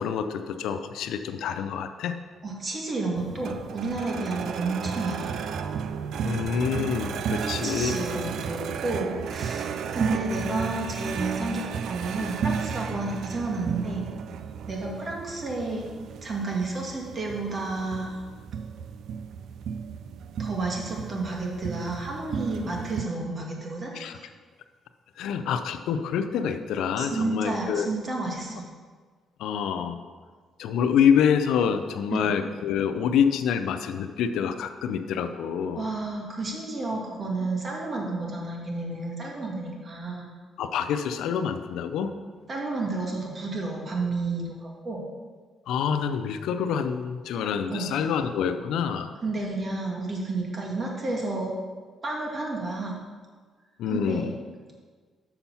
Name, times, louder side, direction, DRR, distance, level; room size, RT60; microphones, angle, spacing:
voice 1, 0.0-2.1 6.2-8.0 23.9-24.2 25.2-27.9 29.4-30.0 30.6-35.9 40.6-42.1 45.7-49.1 53.8-54.3, left 7 dB, 85° left, 9 dB, 0.5 m, -26 dB
voice 2, 2.4-5.3 7.4-14.0 14.7-15.9 16.2-18.2 20.4-23.9 24.2-24.3 27.0-28.6 32.1-32.3 35.8-40.3 42.5-45.0 47.7-47.9 49.2-51.5 52.0-53.0 53.9-54.3, right 3 dB, 40° right, -1 dB, 2.1 m, -31 dB
sound 1, 3.2-23.0, right 7 dB, 75° right, 0.4 m, -34 dB
6.9 x 5.9 x 5.6 m, 1.5 s
cardioid pair, 90°, 0 cm